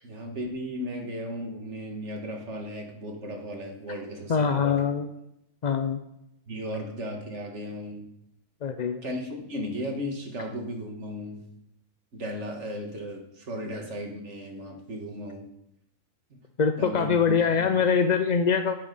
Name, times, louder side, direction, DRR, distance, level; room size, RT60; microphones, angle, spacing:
voice 1, 0.0-4.8 6.5-8.1 9.0-11.4 12.1-15.5 16.8-17.7, equal, 50° right, 1 dB, 2.3 m, -35 dB
voice 2, 4.3-5.1 5.6-6.0 8.6-9.0 16.6-18.8, left 6 dB, 60° left, 7 dB, 0.4 m, -23 dB
17.0 x 6.9 x 5.4 m, 0.84 s
omnidirectional pair, 1.6 m